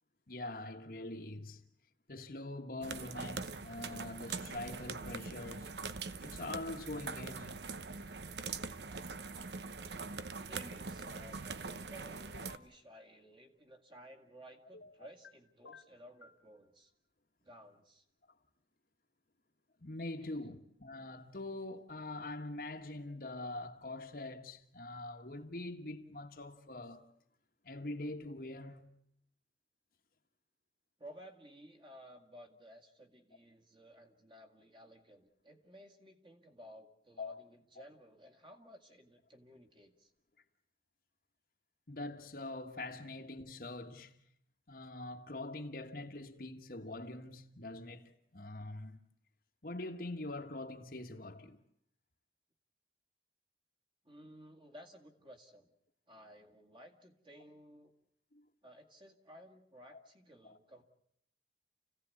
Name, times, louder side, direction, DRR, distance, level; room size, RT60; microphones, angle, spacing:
voice 1, 0.3-1.6 2.1-5.7 6.2-7.7 19.8-27.1 27.6-28.9 37.2-37.4 41.9-44.2 44.7-49.0 49.6-51.6 58.3-58.5 59.9-60.0 60.4-60.6, left 2 dB, 55° left, 1.5 m, -44 dB
sound 1, 2.8-12.6, right 4 dB, 75° right, 0.9 m, -43 dB
voice 2, 10.1-16.9 17.4-18.1 20.2-20.5 31.0-40.1 54.0-55.7 56.1-57.9 58.6-60.8, equal, 30° right, 2.2 m, -56 dB
sound 2, 12.3-12.7 14.7-15.3 15.6-16.4, left 4 dB, 75° left, 0.9 m, -55 dB
29.0 x 16.5 x 8.4 m
head